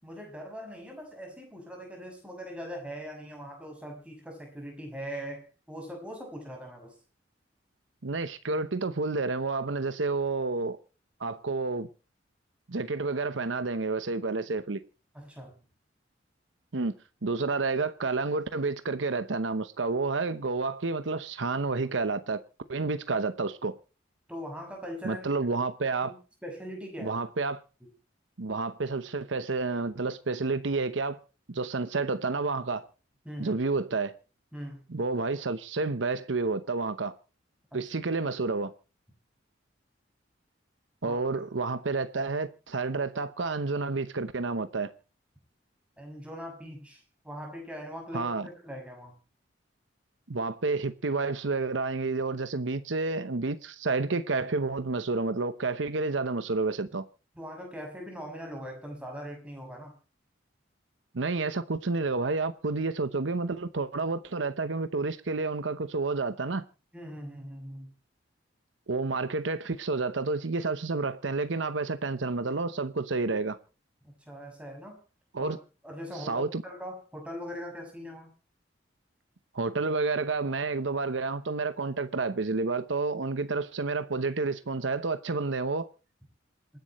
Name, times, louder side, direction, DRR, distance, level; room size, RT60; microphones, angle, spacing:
voice 1, 0.0-7.0 15.1-15.6 24.3-25.2 26.0-26.1 26.4-27.2 27.8-27.9 33.2-33.5 34.5-34.8 41.0-41.2 46.0-49.2 57.3-59.9 66.9-67.9 74.0-75.0 75.4-75.6 75.8-78.3, equal, 5° right, 6.6 m, -41 dB
voice 2, 8.0-10.8 11.2-11.9 12.7-14.8 16.7-16.9 17.2-22.4 22.7-23.8 25.0-26.1 27.0-27.6 28.4-31.2 31.5-32.9 33.4-34.1 34.9-37.2 37.7-38.7 41.0-44.9 48.1-48.5 50.3-57.0 61.1-66.6 68.9-73.6 75.3-75.6 76.1-76.6 79.5-85.9, right 3 dB, 80° right, 0.9 m, -30 dB
27.0 x 10.5 x 3.1 m
head